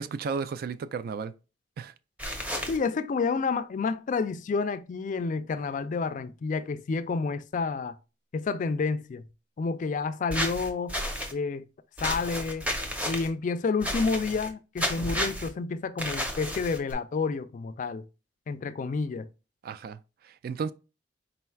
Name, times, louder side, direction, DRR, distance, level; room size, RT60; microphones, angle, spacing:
voice 1, 0.0-1.3 1.8-1.9 19.6-20.0 20.2-20.7, right 5 dB, 55° right, 0.3 m, -33 dB
sound 1, 2.2-2.8 10.3-11.3 12.0-13.3 13.8-14.5 14.8-15.5 16.0-16.9, equal, 10° right, 0.6 m, -32 dB
voice 2, 2.7-8.0 8.3-9.3 9.6-11.0 11.3-11.7 12.0-12.7 13.0-18.0 18.5-19.3, left 4 dB, 45° left, 0.3 m, -29 dB
4.3 x 3.9 x 2.3 m
head